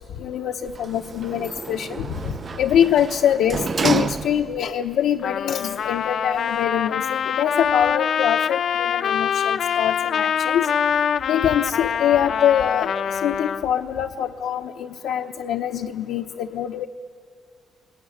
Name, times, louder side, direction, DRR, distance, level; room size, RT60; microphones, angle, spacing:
voice 1, 0.2-2.1 2.6-10.7 11.3-12.9 13.2-16.9, left 9 dB, 80° left, 4 dB, 0.9 m, -24 dB
Sliding door, 0.6-4.8 5.2-5.3, right 5 dB, 40° right, 0.6 m, -29 dB
Trumpet, 5.2-13.6, left 8 dB, 60° left, 0.7 m, -24 dB
25.0 x 22.5 x 10.0 m, 2.4 s
cardioid pair, 90°, 0 cm